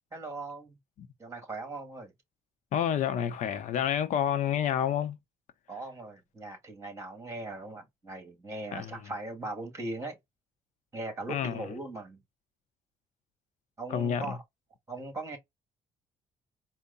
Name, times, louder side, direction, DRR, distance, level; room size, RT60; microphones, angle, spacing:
voice 1, 0.1-0.8 1.2-2.1 5.7-10.2 10.9-12.2 13.8-14.4 14.9-15.4, right 2 dB, 20° right, 2.2 m, -39 dB
voice 2, 2.7-5.2 8.7-9.0 11.3-11.6 13.9-14.4, left 9 dB, 70° left, 0.7 m, -29 dB
4.6 x 2.2 x 3.9 m
cardioid pair, 125°, 13 cm